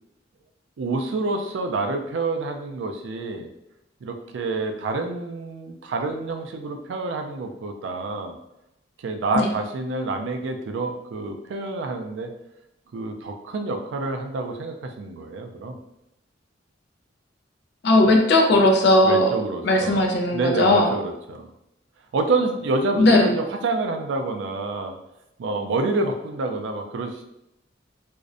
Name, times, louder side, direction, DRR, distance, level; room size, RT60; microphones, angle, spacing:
voice 1, 0.8-3.5 4.0-8.4 9.0-12.3 12.9-15.8 19.0-20.0 20.3-21.5 22.1-24.9 25.4-27.2, right 3 dB, 75° right, 5 dB, 0.3 m, -28 dB
voice 2, 17.8-19.3 19.6-20.9 23.0-23.3, left 1 dB, 60° left, 1 dB, 0.4 m, -17 dB
2.5 x 2.0 x 2.5 m, 0.87 s
head